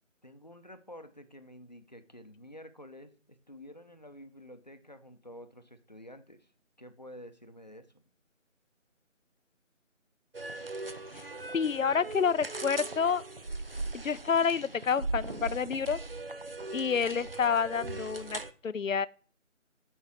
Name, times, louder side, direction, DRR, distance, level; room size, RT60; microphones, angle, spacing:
voice 1, 0.2-6.5 6.8-8.0, left 1 dB, 35° left, 0.8 m, -50 dB
sound 1, 10.3-18.5, right 2 dB, 45° right, 0.7 m, -39 dB
voice 2, 11.5-13.2 13.9-16.0 16.7-19.1, left 6 dB, 80° left, 0.6 m, -29 dB
14.0 x 5.5 x 4.7 m
figure-of-eight pair, 165°, 39 cm